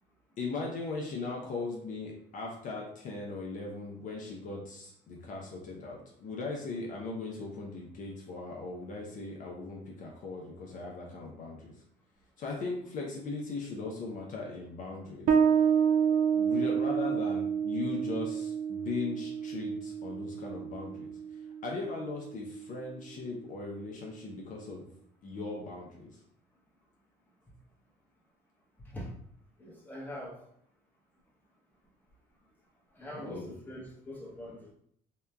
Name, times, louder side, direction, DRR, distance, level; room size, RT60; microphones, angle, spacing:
voice 1, 0.4-11.7 12.4-15.3 16.3-21.1 21.6-24.8 25.2-26.2 33.1-33.5, left 3 dB, 50° left, -2 dB, 0.5 m, -38 dB
Bass guitar, 15.3-22.4, right 7 dB, 60° right, 0.4 m, -29 dB
voice 2, 29.6-30.4 32.9-34.7, equal, 10° left, -5 dB, 0.8 m, -43 dB
2.8 x 2.2 x 2.2 m, 0.67 s
cardioid pair, 110°, 17 cm